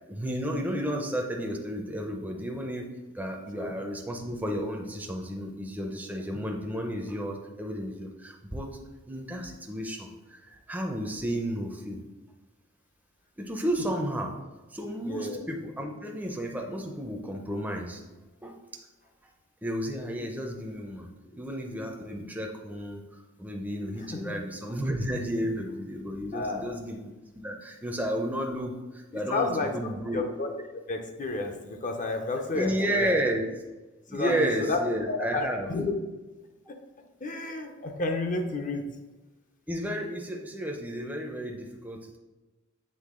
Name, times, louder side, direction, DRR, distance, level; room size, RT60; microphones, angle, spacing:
voice 1, 0.1-8.7 9.1-10.4 10.7-12.0 13.4-14.3 14.7-18.0 18.4-18.6 19.6-21.1 21.3-30.2 32.5-33.4 34.1-35.7 39.7-42.2, equal, 10° right, 1 dB, 0.5 m, -32 dB
voice 2, 15.0-15.4 21.2-21.4 24.0-24.4 25.4-25.5 26.3-26.8 29.1-33.1 34.1-34.8 35.1-35.9 36.7-36.8 37.2-38.9, left 3 dB, 35° left, 4 dB, 0.6 m, -32 dB
7.6 x 3.4 x 3.6 m, 1.1 s
head